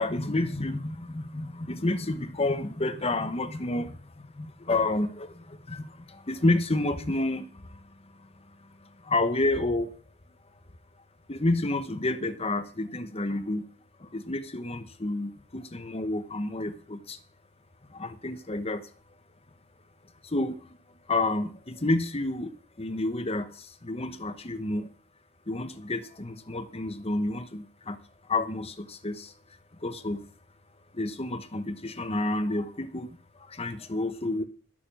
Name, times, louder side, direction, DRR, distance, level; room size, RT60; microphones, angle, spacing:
voice 1, 0.0-7.8 8.2-8.3 8.8-9.9 11.3-13.6 14.0-17.2 17.9-18.9 20.2-20.8 21.1-24.9 25.5-28.0 28.2-29.3 29.8-30.2 30.9-34.4, left 2 dB, 30° left, 9 dB, 1.1 m, -30 dB
12.0 x 6.9 x 8.8 m, 0.43 s
head